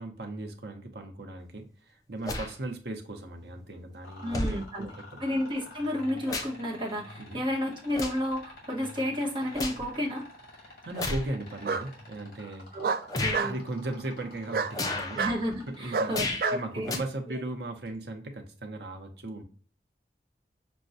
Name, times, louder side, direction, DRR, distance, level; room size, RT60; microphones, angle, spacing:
voice 1, 0.0-5.2 7.2-7.4 10.6-12.8 13.2-15.2 15.7-16.1 16.5-19.4, right 2 dB, 70° right, 4 dB, 0.8 m, -37 dB
sound 1, 2.2-2.5 3.6-3.7 4.3-4.6 5.8-6.7 7.0-7.3 7.9-8.3 8.8-9.8 10.9-11.3 12.0-12.1 13.1-13.4 14.7-15.2 16.1-16.5 16.8-17.0, left 2 dB, 20° left, 0.5 m, -33 dB
sound 2, 4.0-16.2 17.8-18.0, left 2 dB, 60° left, 2.0 m, -49 dB
voice 2, 4.2-4.9 5.2-10.2 12.7-12.9 13.2-13.6 15.1-16.9, left 1 dB, 30° right, -1 dB, 1.0 m, -31 dB
Bark, 9.5-10.1 11.6-11.9 12.8-13.6 14.5-14.7 15.2-15.4 15.9-16.6, right 5 dB, 55° right, 0.3 m, -29 dB
6.2 x 2.2 x 2.5 m, 0.42 s
head